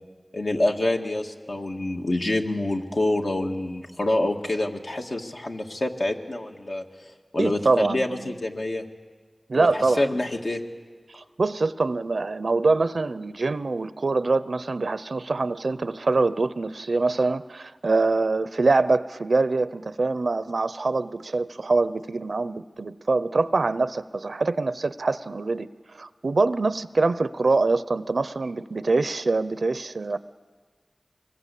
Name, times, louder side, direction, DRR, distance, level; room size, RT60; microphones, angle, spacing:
voice 1, 0.3-8.8 9.6-10.6, left 1 dB, 65° left, 2 dB, 1.9 m, -27 dB
voice 2, 7.4-8.3 9.5-10.0 11.1-30.2, right 3 dB, 85° right, 15 dB, 0.6 m, -24 dB
24.0 x 20.5 x 8.4 m, 1.5 s
wide cardioid pair, 50°, 0 cm